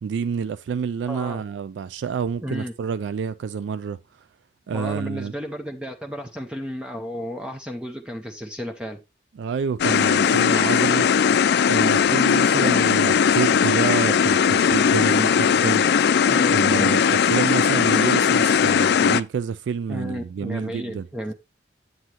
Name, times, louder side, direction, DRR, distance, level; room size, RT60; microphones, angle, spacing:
voice 1, 0.0-4.0 4.7-5.3 9.4-11.1 11.6-15.9 16.5-21.1, right 6 dB, 85° right, 0.3 m, -28 dB
voice 2, 1.0-1.4 2.4-2.7 4.7-9.0 16.3-16.9 19.9-21.3, equal, 5° right, 0.6 m, -33 dB
sound 1, 9.8-19.2, left 7 dB, 65° left, 0.4 m, -19 dB
7.8 x 7.7 x 2.9 m
head